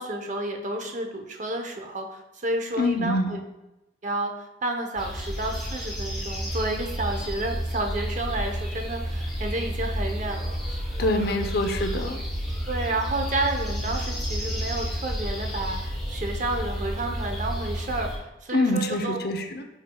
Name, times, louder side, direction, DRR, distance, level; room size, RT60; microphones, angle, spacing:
voice 1, 0.0-3.4 4.0-11.4 12.6-19.2, right 2 dB, 40° right, 3 dB, 0.8 m, -31 dB
voice 2, 2.8-3.3 11.0-12.2 18.5-19.6, left 1 dB, 55° left, 6 dB, 0.7 m, -25 dB
sound 1, 4.9-18.2, equal, ahead, 2.4 m, -31 dB
10.5 x 5.0 x 2.3 m, 0.97 s
head